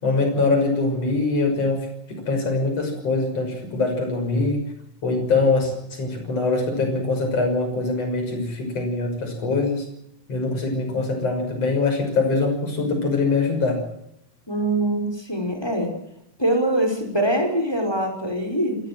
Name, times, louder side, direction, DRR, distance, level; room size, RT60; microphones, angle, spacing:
voice 1, 0.0-4.6 5.0-9.8 10.3-13.8, left 3 dB, 45° left, 4 dB, 7.3 m, -23 dB
voice 2, 14.5-15.9 16.4-18.8, right 1 dB, 5° left, 4 dB, 5.2 m, -23 dB
28.0 x 16.0 x 7.8 m, 0.76 s
omnidirectional pair, 3.8 m